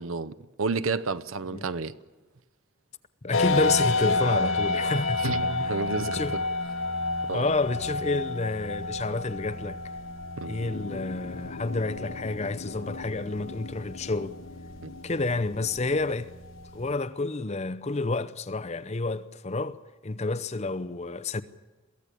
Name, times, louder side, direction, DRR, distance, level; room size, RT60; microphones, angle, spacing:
voice 1, 0.0-2.0 5.2-6.4 7.3-7.5 10.4-10.6 14.8-14.9, right 4 dB, 85° right, 0.7 m, -31 dB
voice 2, 3.2-6.4 7.3-9.8 10.5-14.4 15.0-16.3 16.7-19.8 20.0-21.4, left 3 dB, 30° left, 0.7 m, -29 dB
sound 1, 3.3-16.9, left 3 dB, 75° left, 1.2 m, -31 dB
sound 2, 10.6-16.1, left 4 dB, 90° left, 0.7 m, -43 dB
23.0 x 15.5 x 8.4 m
head